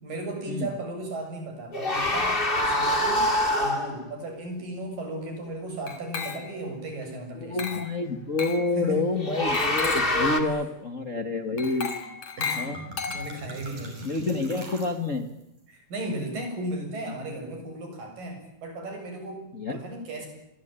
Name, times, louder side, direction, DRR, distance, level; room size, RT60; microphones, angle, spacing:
voice 1, 0.0-3.3 3.6-7.8 8.8-9.0 10.4-10.6 11.7-11.9 12.4-12.7 13.1-14.1 15.7-19.4 19.7-20.3, right 1 dB, 85° right, 4 dB, 8.8 m, -35 dB
sound 1, 1.7-4.0 9.1-10.4, left 1 dB, 15° left, 2.5 m, -25 dB
Glass, 5.9-6.7 7.6-8.0 8.4-8.7 9.5-10.2 11.6-13.6, left 6 dB, 55° left, 3.7 m, -34 dB
voice 2, 7.4-11.9 12.6-12.8 14.0-15.3 19.5-19.8, left 3 dB, 35° left, 8 dB, 1.3 m, -28 dB
sound 2, 12.0-12.1 12.4-15.4, right 2 dB, 70° right, 7.4 m, -43 dB
28.0 x 22.5 x 9.0 m, 0.85 s
omnidirectional pair, 3.8 m